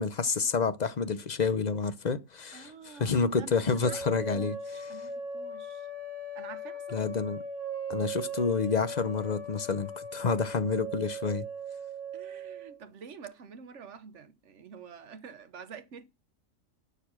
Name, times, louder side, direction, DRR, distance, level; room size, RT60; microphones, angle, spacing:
voice 1, 0.0-4.5 6.9-7.4 7.9-11.5, left 5 dB, 40° left, 0.7 m, -29 dB
voice 2, 2.5-4.0 4.3-5.9 6.3-7.3 12.1-16.1, right 6 dB, 60° right, 1.4 m, -48 dB
sound 1, 3.8-12.8, right 2 dB, 10° right, 3.0 m, -39 dB
11.5 x 6.7 x 6.1 m
omnidirectional pair, 1.4 m